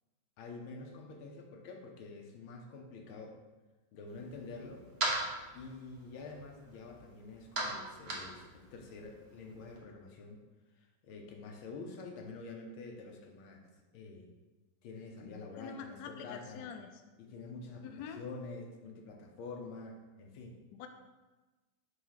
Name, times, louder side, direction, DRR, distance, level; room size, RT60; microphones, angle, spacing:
voice 1, 0.4-3.4 3.9-4.8 5.5-10.4 11.0-13.6 13.9-14.3 14.8-16.7 17.2-20.6, left 3 dB, 85° left, 2 dB, 1.7 m, -47 dB
sound 1, 4.1-9.8, right 2 dB, 40° right, 0.9 m, -41 dB
voice 2, 15.6-16.9 17.8-18.2 20.7-20.9, left 7 dB, 70° left, 5 dB, 0.9 m, -45 dB
4.7 x 3.9 x 5.6 m, 1.2 s
omnidirectional pair, 2.2 m